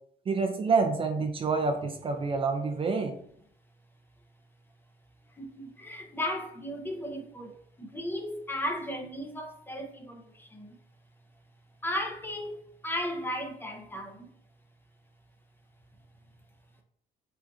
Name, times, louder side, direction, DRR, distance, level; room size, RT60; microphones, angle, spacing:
voice 1, 0.3-3.1, right 4 dB, 30° right, 0.6 m, -27 dB
voice 2, 5.4-7.5 7.8-10.8 11.8-14.3, equal, 10° left, 0.8 m, -35 dB
5.0 x 3.7 x 2.7 m
cardioid pair, 110°, 17 cm